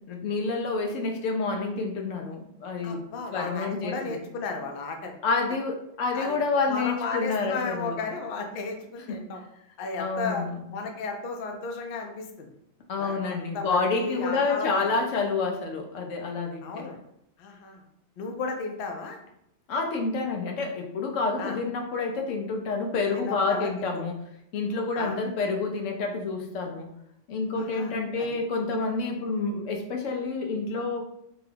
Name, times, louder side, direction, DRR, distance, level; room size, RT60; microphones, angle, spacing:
voice 1, 0.1-3.0 3.3-4.2 5.2-8.0 9.1-9.2 10.0-10.5 12.9-16.9 19.7-24.2 24.5-26.9 27.3-31.0, left 4 dB, 85° left, 3 dB, 0.9 m, -28 dB
voice 2, 2.8-5.1 6.1-6.4 6.7-9.4 9.8-10.5 10.7-12.5 13.0-14.9 16.6-17.0 17.4-17.8 18.2-19.2 21.4-21.6 23.1-24.0 25.0-25.2 27.6-28.3, left 4 dB, 60° left, 3 dB, 0.6 m, -34 dB
2.8 x 2.3 x 3.3 m, 0.77 s
omnidirectional pair, 1.3 m